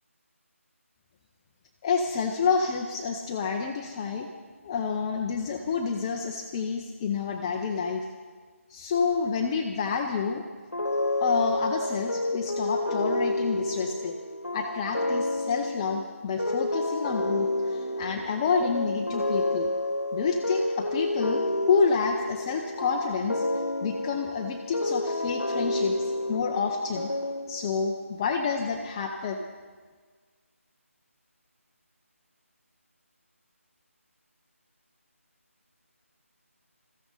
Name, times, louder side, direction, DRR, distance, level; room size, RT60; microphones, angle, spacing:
voice 1, 1.8-4.3 4.6-8.1 8.7-10.4 11.2-14.1 14.5-19.7 20.1-27.1 27.5-29.4, left 5 dB, 20° left, 2 dB, 0.8 m, -29 dB
sound 1, 10.7-27.9, left 2 dB, 90° left, 1.4 m, -30 dB
21.0 x 15.0 x 4.0 m, 1.5 s
figure-of-eight pair, 160°, 8 cm